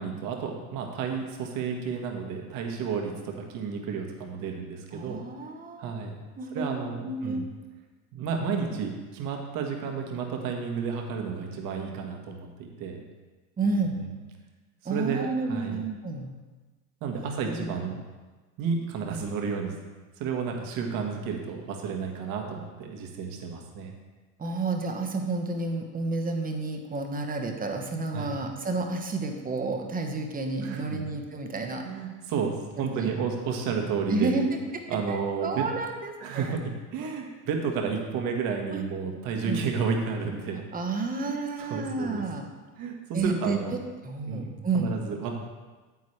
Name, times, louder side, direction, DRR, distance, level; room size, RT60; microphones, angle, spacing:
voice 1, 0.0-5.2 5.8-6.1 6.5-7.5 8.1-13.0 13.6-14.1 14.8-15.8 17.0-18.0 18.6-19.7 20.2-23.9 28.1-28.4 30.6-31.0 31.8-34.5 34.9-35.6 36.2-40.6 41.2-41.3 41.6-42.2 42.8-43.7 44.3-45.3, right 5 dB, 50° right, 2 dB, 1.7 m, -31 dB
voice 2, 4.9-6.0 6.4-7.4 13.6-14.0 14.8-16.3 17.2-17.8 24.4-31.8 32.8-33.1 34.1-34.6 35.1-36.5 38.7-38.8 39.4-39.7 40.7-42.5 43.1-43.8 44.0-45.0, right 3 dB, 20° right, 4 dB, 1.2 m, -30 dB
9.3 x 8.2 x 3.3 m, 1.3 s
hypercardioid pair, 95°, 43 cm